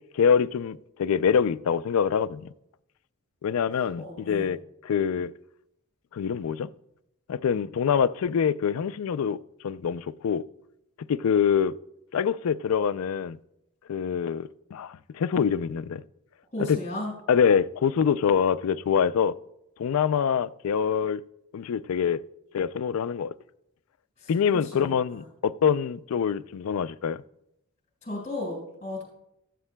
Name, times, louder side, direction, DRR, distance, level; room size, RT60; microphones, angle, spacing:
voice 1, 0.1-2.4 3.4-4.6 4.8-5.3 6.1-6.7 7.3-9.4 9.6-10.4 11.1-11.7 12.1-13.4 13.9-16.0 16.7-16.8 17.3-19.3 19.8-21.2 21.5-22.2 22.5-23.3 24.3-27.2, left 7 dB, 70° left, 0.4 m, -25 dB
voice 2, 4.0-4.5 16.5-17.1 24.2-25.3 28.0-29.0, left 1 dB, 30° left, 4.8 m, -35 dB
17.0 x 13.0 x 2.2 m
head